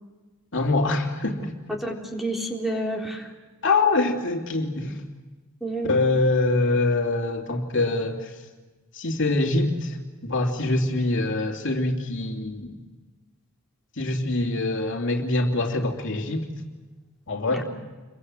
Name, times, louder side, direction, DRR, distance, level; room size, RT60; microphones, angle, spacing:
voice 1, 0.5-1.5 3.6-5.0 5.8-8.3 8.9-10.0 10.2-12.7 14.0-16.4 17.3-17.7, left 2 dB, 55° left, 2 dB, 3.1 m, -24 dB
voice 2, 1.7-3.3 5.6-6.0 17.5-17.7, right 1 dB, ahead, 0 dB, 3.8 m, -29 dB
29.5 x 24.0 x 8.0 m, 1.3 s
head